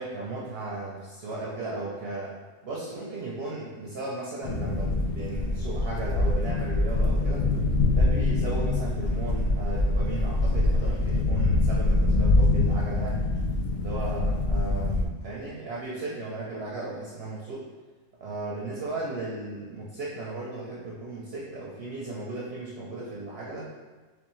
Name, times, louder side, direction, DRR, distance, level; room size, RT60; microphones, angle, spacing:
voice 1, 0.0-2.3 2.6-7.5 7.9-13.3 13.8-17.7 18.2-23.7, right 2 dB, 60° right, -5 dB, 0.7 m, -36 dB
sound 1, 4.4-15.1, left 2 dB, 85° left, 0.4 m, -24 dB
3.5 x 3.2 x 3.0 m, 1.3 s
omnidirectional pair, 1.3 m